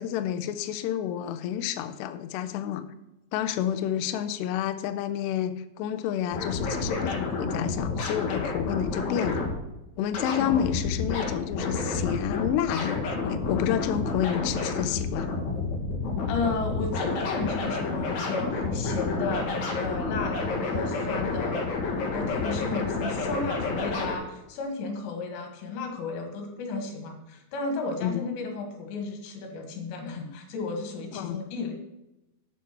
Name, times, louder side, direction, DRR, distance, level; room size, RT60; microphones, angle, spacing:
voice 1, 0.0-2.9 3.3-9.4 10.0-15.3 28.0-28.2 31.1-31.4, left 10 dB, 90° left, 9 dB, 2.5 m, -29 dB
sound 1, 6.3-9.6 10.1-24.2, left 3 dB, 50° left, 2.5 m, -30 dB
voice 2, 16.3-21.7 22.1-31.8, left 3 dB, 70° left, 4 dB, 3.8 m, -33 dB
9.5 x 7.2 x 6.0 m, 0.94 s
omnidirectional pair, 5.6 m